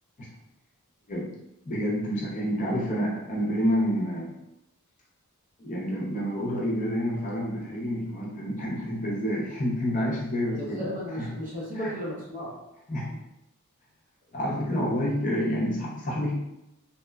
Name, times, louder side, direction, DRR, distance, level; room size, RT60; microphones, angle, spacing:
voice 1, 1.6-4.3 5.6-10.9 11.2-11.3 11.7-11.9 12.9-13.2 14.3-16.3, equal, 35° left, -4 dB, 0.5 m, -28 dB
voice 2, 10.4-12.5 14.7-14.8, equal, 35° right, -5 dB, 0.7 m, -35 dB
2.8 x 2.1 x 2.2 m, 0.87 s
head